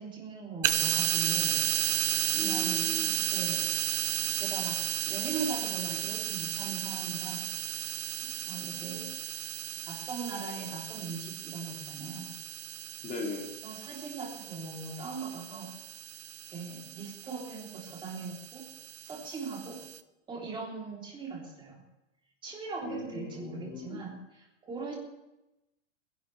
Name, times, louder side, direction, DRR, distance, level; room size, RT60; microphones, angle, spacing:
voice 1, 0.0-2.0 2.4-2.9 3.3-3.6 4.2-4.8 5.0-7.5 7.7-7.9 8.2-9.1 9.9-12.3 13.6-15.7 16.5-18.7 19.0-19.8 20.3-21.8 22.4-25.0, right 4 dB, 15° right, -3 dB, 3.3 m, -40 dB
sound 1, 0.6-20.0, right 13 dB, 80° right, 0.9 m, -34 dB
voice 2, 2.3-3.2 13.0-13.5 22.8-24.0, left 2 dB, 20° left, 0 dB, 2.6 m, -39 dB
27.0 x 11.0 x 3.4 m, 0.95 s
supercardioid pair, 170°, 37 cm